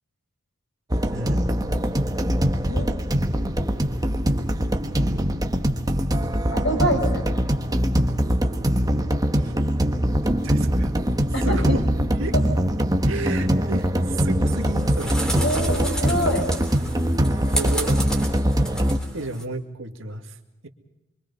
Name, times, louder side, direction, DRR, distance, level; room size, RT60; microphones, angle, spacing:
sound 1, 0.9-19.0, equal, 15° right, 1.2 m, -22 dB
voice 1, 1.1-1.4 9.4-9.7 10.2-10.9 11.4-11.8 12.1-12.3 13.1-15.2 17.5-18.0 19.1-20.4, right 2 dB, 65° right, 4 dB, 2.1 m, -32 dB
voice 2, 2.3-2.9 6.5-7.2 11.3-11.6 12.3-12.4 15.4-16.5, equal, 55° left, 2 dB, 6.8 m, -25 dB
sound 2, 14.5-19.4, right 2 dB, 5° left, 3.2 m, -32 dB
25.5 x 24.0 x 5.5 m, 0.95 s
head